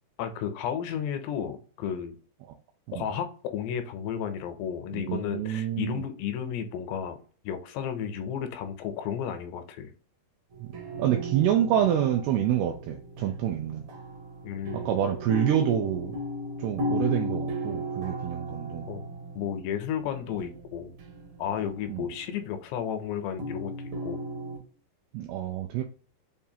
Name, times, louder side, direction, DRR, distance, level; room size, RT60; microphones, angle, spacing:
voice 1, 0.2-2.2 2.9-7.2 7.4-9.9 14.4-14.9 18.9-20.9 21.4-23.7 24.0-24.2, left 8 dB, 80° left, 8 dB, 2.6 m, -33 dB
voice 2, 4.9-6.0 10.6-10.7 11.0-13.9 14.7-16.2 16.6-18.9 21.9-22.1 25.1-25.8, right 10 dB, 85° right, 4 dB, 2.2 m, -27 dB
sound 1, 10.5-22.3 23.4-24.6, equal, 65° right, 1.8 m, -36 dB
7.1 x 2.5 x 2.7 m, 0.42 s
omnidirectional pair, 5.0 m